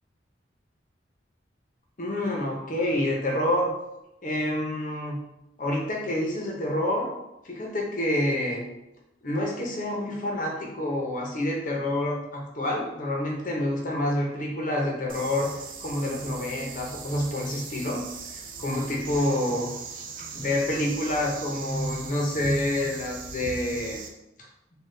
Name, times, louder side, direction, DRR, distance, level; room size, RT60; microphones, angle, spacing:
voice 1, 2.0-3.7 4.2-5.2 5.6-7.1 7.4-8.6 9.2-15.5 15.8-18.0 18.3-19.7 20.2-24.0, left 1 dB, 45° left, -1 dB, 0.7 m, -28 dB
sound 1, 15.1-24.1, right 5 dB, 50° right, 0.4 m, -40 dB
3.8 x 2.3 x 3.2 m, 0.88 s
head